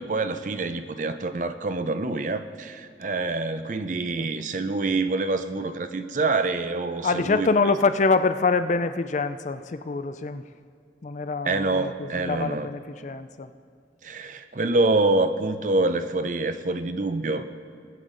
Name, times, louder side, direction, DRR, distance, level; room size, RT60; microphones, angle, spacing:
voice 1, 0.0-7.5 11.4-12.7 14.0-17.4, right 3 dB, 45° right, 10 dB, 0.5 m, -26 dB
voice 2, 7.0-10.4 11.0-13.5, left 4 dB, 40° left, 11 dB, 0.4 m, -25 dB
20.0 x 8.1 x 3.9 m, 2.3 s
head